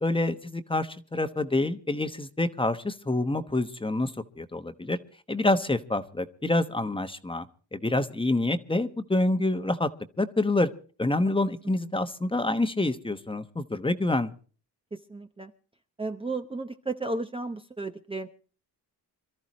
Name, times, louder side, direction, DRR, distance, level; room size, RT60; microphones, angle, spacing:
voice 1, 0.0-4.1 4.4-5.0 5.3-7.5 7.7-9.9 10.2-10.7 11.0-14.3, left 2 dB, 15° left, 9 dB, 1.2 m, -27 dB
voice 2, 14.9-15.5 16.0-18.3, right 3 dB, 15° right, 5 dB, 0.9 m, -34 dB
27.0 x 13.5 x 3.1 m, 0.40 s
cardioid pair, 110°, 39 cm